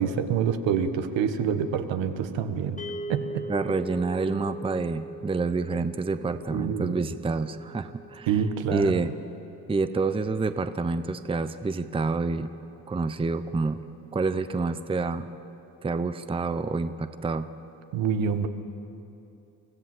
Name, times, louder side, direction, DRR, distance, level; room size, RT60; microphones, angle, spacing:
voice 1, 0.0-2.8 3.1-3.5 6.5-7.0 8.3-9.1 17.9-18.5, right 7 dB, 75° right, 8 dB, 1.4 m, -27 dB
sound 1, 2.8-13.1, right 2 dB, 15° left, 1.2 m, -42 dB
voice 2, 3.5-8.3 8.7-9.1 9.7-12.5 12.9-13.8 14.1-15.3 15.8-17.5, right 3 dB, 10° right, 11 dB, 0.7 m, -28 dB
25.0 x 14.0 x 7.8 m, 2.8 s
cardioid pair, 90°, 45 cm